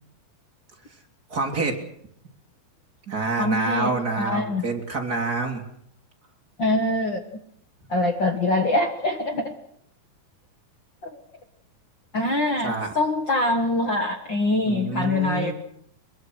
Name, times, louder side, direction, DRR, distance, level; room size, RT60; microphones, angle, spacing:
voice 1, 1.3-1.8 3.1-5.6 12.6-12.9 14.7-15.5, right 3 dB, 25° right, 2 dB, 3.0 m, -27 dB
voice 2, 3.4-3.9 4.2-4.6 6.6-7.2 7.9-9.5 11.0-11.2 12.1-15.5, left 2 dB, 55° left, 5 dB, 1.3 m, -24 dB
23.0 x 22.0 x 6.2 m, 0.70 s
omnidirectional pair, 4.5 m